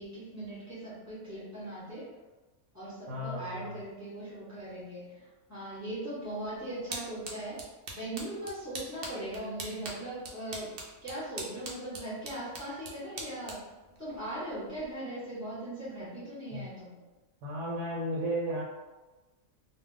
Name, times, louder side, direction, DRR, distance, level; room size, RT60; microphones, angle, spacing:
voice 1, 0.0-2.1 2.7-10.7 11.0-13.6 14.0-17.0, right 1 dB, 15° left, -8 dB, 0.6 m, -39 dB
voice 2, 3.1-3.8 16.5-16.6 17.4-18.6, equal, 85° right, -4 dB, 1.0 m, -34 dB
sound 1, 6.2-14.9, right 3 dB, 60° right, 0.6 m, -45 dB
2.3 x 2.2 x 3.6 m, 1.1 s
omnidirectional pair, 1.4 m